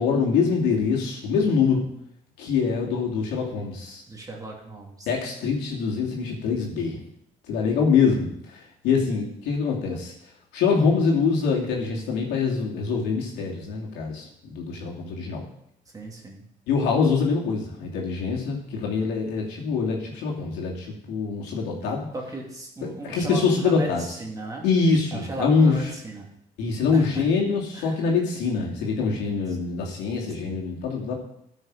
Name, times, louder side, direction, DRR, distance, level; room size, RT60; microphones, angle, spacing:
voice 1, 0.0-1.9 2.4-4.0 5.1-7.0 7.5-8.3 8.8-10.1 10.5-15.4 16.7-22.1 23.0-24.0 24.6-25.8 26.6-31.1, left 5 dB, 90° left, -2 dB, 2.8 m, -24 dB
voice 2, 4.1-5.1 15.9-16.4 22.1-24.7 25.1-26.3 26.9-27.3 27.7-28.0 30.4-30.6, right 2 dB, 20° right, -1 dB, 2.7 m, -36 dB
13.0 x 6.3 x 5.0 m, 0.76 s
cardioid pair, 110°, 17 cm